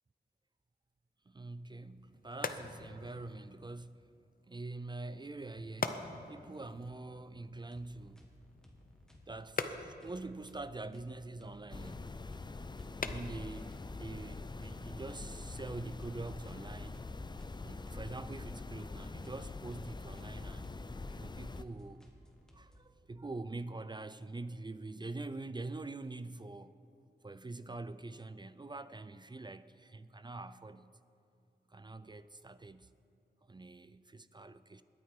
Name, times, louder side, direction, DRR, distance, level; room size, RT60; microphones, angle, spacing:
voice 1, 1.3-4.1 4.5-6.0 6.3-8.3 9.3-12.2 13.0-13.7 14.0-17.0 17.6-20.7 21.1-22.0 22.5-26.8 27.2-31.0 31.7-32.9 33.4-34.8, right 2 dB, 25° right, 0.4 m, -45 dB
sound 1, 1.8-15.3, left 4 dB, 55° left, 0.8 m, -46 dB
sound 2, 7.7-22.8, equal, 5° left, 2.1 m, -62 dB
sound 3, 11.7-21.6, left 3 dB, 25° left, 0.5 m, -44 dB
21.0 x 9.2 x 4.8 m
wide cardioid pair, 75°, 18 cm